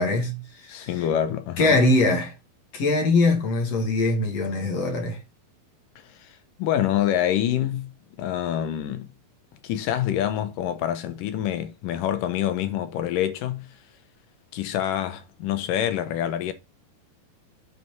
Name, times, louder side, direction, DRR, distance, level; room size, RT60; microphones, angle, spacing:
voice 1, 0.0-1.0 1.6-2.3 2.7-5.2, left 2 dB, 45° left, 2.8 m, -22 dB
voice 2, 0.7-1.8 6.2-6.3 6.6-7.9 8.2-9.1 9.6-13.7 14.5-16.5, left 11 dB, 70° left, 2.4 m, -26 dB
8.3 x 4.9 x 4.7 m
omnidirectional pair, 4.3 m